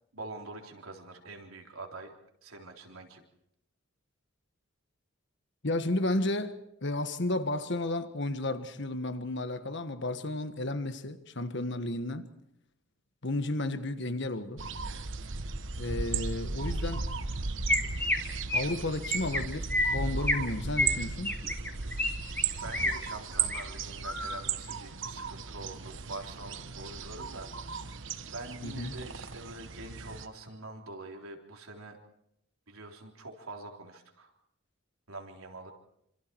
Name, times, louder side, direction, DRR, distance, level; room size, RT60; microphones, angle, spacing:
voice 1, 0.1-2.1 2.4-3.2 22.6-32.0 32.7-34.3 35.1-35.7, right 2 dB, 90° right, 3.8 m, -45 dB
voice 2, 5.6-12.3 13.2-14.6 15.8-17.1 18.5-21.3 28.6-28.9, left 2 dB, 55° left, 1.5 m, -32 dB
sound 1, 14.6-30.3, right 5 dB, 60° right, 1.2 m, -36 dB
Chirp tweet, 17.3-17.4 17.7-18.2 18.5-18.7 19.0-19.4 19.7-20.4 20.8-22.1 22.4-22.9 23.3-23.6 24.0-24.4, left 1 dB, 10° left, 1.9 m, -29 dB
27.0 x 26.5 x 4.7 m
head